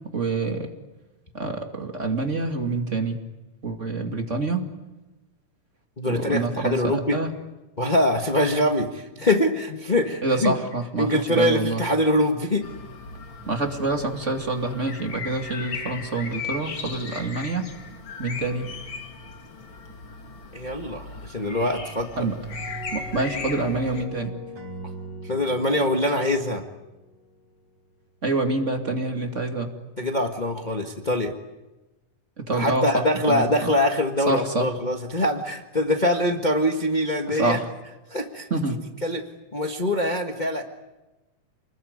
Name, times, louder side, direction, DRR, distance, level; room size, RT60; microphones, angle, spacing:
voice 1, 0.1-0.7 1.3-3.2 3.6-4.6 6.1-7.3 10.2-11.8 13.5-17.7 18.2-18.7 22.2-22.4 22.9-24.3 28.2-29.7 32.4-33.7 34.3-34.7 37.3-37.7 38.5-38.8, right 3 dB, 25° right, 4 dB, 2.3 m, -26 dB
voice 2, 6.0-7.2 7.8-10.5 11.0-12.6 20.5-22.3 25.2-26.6 30.0-31.3 32.5-37.6 38.1-38.5 39.0-39.3 39.5-40.6, left 1 dB, 70° left, 3 dB, 0.4 m, -23 dB
sound 1, 12.6-24.1, left 4 dB, 40° left, 2.8 m, -37 dB
sound 2, 22.5-27.7, equal, 75° right, 6.6 m, -41 dB
29.5 x 21.0 x 9.6 m, 1.1 s
omnidirectional pair, 3.8 m